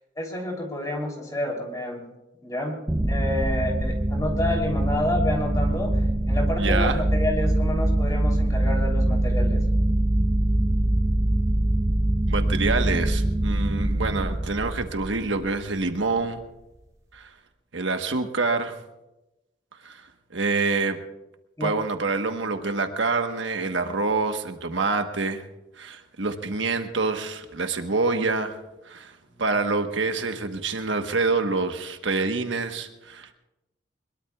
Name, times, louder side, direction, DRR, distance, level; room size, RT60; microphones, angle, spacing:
voice 1, 0.2-2.0 2.4-2.8 3.1-5.9 6.3-9.6 21.6-21.7 29.3-29.4, left 1 dB, 20° left, 0 dB, 3.3 m, -29 dB
sound 1, 2.9-15.8, right 1 dB, 15° right, 0.6 m, -23 dB
voice 2, 6.6-7.0 12.3-16.4 17.1-17.3 17.7-18.8 19.8-20.0 20.3-21.0 21.6-25.4 25.8-28.6 28.8-33.3, right 3 dB, 85° right, 6 dB, 1.3 m, -26 dB
22.0 x 22.0 x 2.4 m, 0.96 s
head